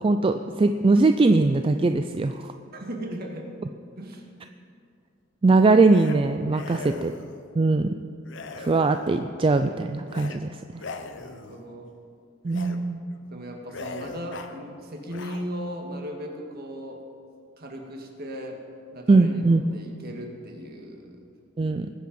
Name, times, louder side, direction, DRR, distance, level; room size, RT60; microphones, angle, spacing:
voice 1, 0.0-2.5 5.4-7.1 7.6-7.9 8.6-10.8 12.4-13.0 19.1-19.6 21.6-21.9, right 3 dB, 30° right, 8 dB, 0.3 m, -21 dB
voice 2, 2.7-3.5 4.0-4.3 6.7-7.0 11.1-11.9 13.3-17.0 17.6-18.6 18.9-21.2, equal, 55° right, 2 dB, 1.8 m, -37 dB
sound 1, 5.9-6.2 6.5-7.4 8.3-9.2 10.1-10.4 10.7-11.7 12.5-12.8 13.1-13.3 13.7-14.6 15.0-15.7, left 3 dB, 70° left, 0.8 m, -40 dB
20.5 x 7.6 x 5.3 m, 2.4 s
head